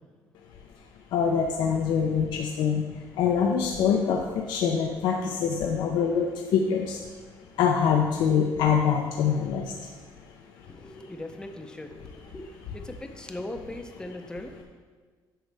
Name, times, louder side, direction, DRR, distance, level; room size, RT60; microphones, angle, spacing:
voice 1, 1.1-2.8 3.2-4.2 4.5-7.0 7.6-9.6, left 7 dB, 75° left, 1 dB, 0.6 m, -24 dB
voice 2, 10.7-12.5 12.7-14.6, left 1 dB, 10° left, 5 dB, 0.7 m, -39 dB
9.0 x 6.3 x 3.5 m, 1.5 s
cardioid pair, 120°, 8 cm